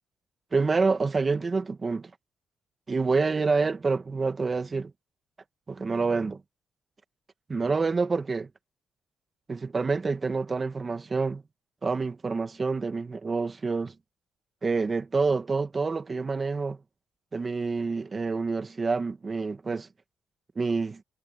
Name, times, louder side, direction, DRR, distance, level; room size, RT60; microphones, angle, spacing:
voice 1, 0.5-2.1 2.9-4.9 5.7-6.4 7.5-8.5 9.5-11.4 11.8-13.9 14.6-16.8 17.3-19.9 20.5-21.0, right 4 dB, 30° right, 1.6 m, -27 dB
cardioid pair, 90°, 0 cm